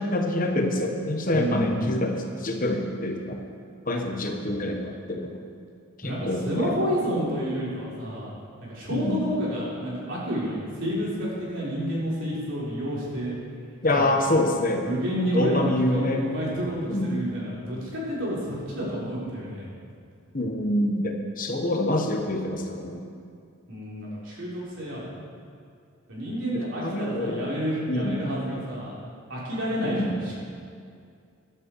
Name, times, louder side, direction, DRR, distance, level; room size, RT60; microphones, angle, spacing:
voice 1, 0.0-3.4 3.9-5.3 6.0-6.8 8.9-9.2 13.8-14.9 15.3-16.2 16.9-17.2 20.3-23.0 26.5-27.4 27.9-28.2 29.8-30.2, left 1 dB, 35° left, 3 dB, 1.1 m, -26 dB
voice 2, 1.3-1.8 6.0-8.3 8.6-13.3 13.9-14.2 14.8-19.7 23.7-25.1 26.1-28.9 29.3-30.3, equal, 55° right, -6 dB, 3.8 m, -29 dB
13.5 x 12.0 x 4.6 m, 2.3 s
head